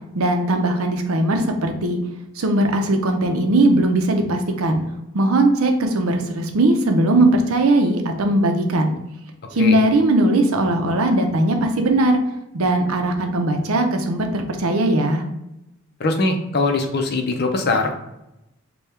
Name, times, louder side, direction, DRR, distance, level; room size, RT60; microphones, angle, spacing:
voice 1, 0.2-2.0 2.4-4.8 5.1-8.9 9.5-12.2 12.5-15.2, right 1 dB, 85° right, 4 dB, 0.6 m, -19 dB
voice 2, 16.0-18.0, left 3 dB, 50° left, 4 dB, 0.5 m, -21 dB
3.5 x 2.3 x 4.2 m, 0.88 s
head